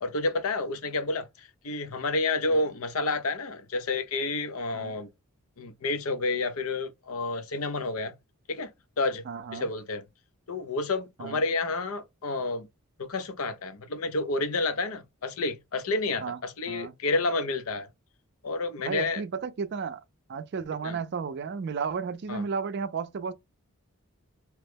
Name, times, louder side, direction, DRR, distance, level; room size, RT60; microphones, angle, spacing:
voice 1, 0.0-5.1 5.6-8.1 8.5-9.2 9.5-10.0 10.5-12.7 13.0-17.9 18.4-19.2 20.8-21.0 22.3-22.4, left 3 dB, 80° left, 0.6 m, -30 dB
voice 2, 9.3-9.7 11.2-11.4 16.2-16.4 16.7-16.9 18.8-20.0 20.3-23.3, right 5 dB, 50° right, 0.4 m, -33 dB
2.9 x 2.1 x 3.3 m
head